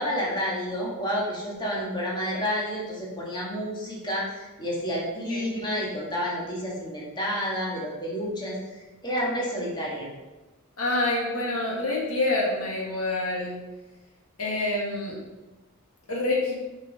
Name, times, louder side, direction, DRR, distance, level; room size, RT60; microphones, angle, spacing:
voice 1, 0.0-10.1, equal, 20° left, -4 dB, 1.9 m, -30 dB
voice 2, 10.8-13.6 14.4-15.2 16.1-16.5, left 2 dB, 75° left, -2 dB, 2.1 m, -27 dB
7.3 x 5.5 x 5.3 m, 1.1 s
head